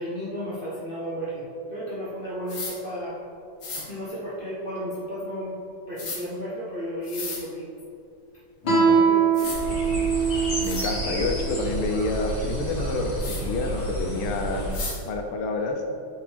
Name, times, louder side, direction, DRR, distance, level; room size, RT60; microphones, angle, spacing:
voice 1, 0.0-1.3 1.7-3.1 3.8-5.6 5.9-7.6 8.8-9.5, equal, 40° right, -8 dB, 0.7 m, -33 dB
sound 1, 2.5-2.7 3.6-3.8 6.0-6.2 7.0-7.4 8.9-9.0 9.3-9.6 10.2-10.3 10.6-10.9 13.2-13.4 14.7-15.0, left 3 dB, 45° left, 1.2 m, -34 dB
Guitar, 8.6-11.9, right 6 dB, 65° left, 2.2 m, -23 dB
voice 2, 8.8-9.1 10.6-14.7 15.0-15.8, left 3 dB, 85° left, 4 dB, 1.6 m, -28 dB
sound 2, 9.5-14.8, right 1 dB, 25° left, 1.2 m, -30 dB
6.3 x 5.7 x 3.4 m, 2.5 s
omnidirectional pair, 2.3 m